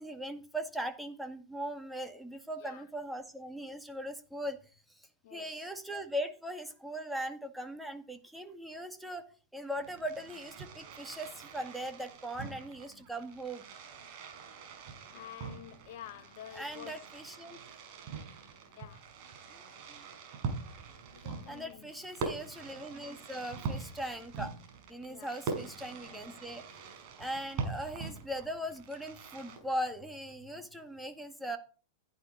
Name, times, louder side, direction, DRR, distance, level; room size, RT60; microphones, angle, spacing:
voice 1, 0.0-4.6 5.0-9.2 9.5-13.6 16.5-17.6 19.5-19.6 19.9-20.0 21.5-24.6 24.9-26.6 27.2-31.6, equal, ahead, 2.1 m, -39 dB
voice 2, 5.2-5.7 15.1-17.0 18.7-19.1 21.1-21.9 25.0-25.3 30.5-30.6, left 11 dB, 50° left, 1.4 m, -49 dB
Fireworks, 9.7-29.6, right 5 dB, 40° right, 5.7 m, -43 dB
16.0 x 11.5 x 4.3 m
figure-of-eight pair, 95°, 0 cm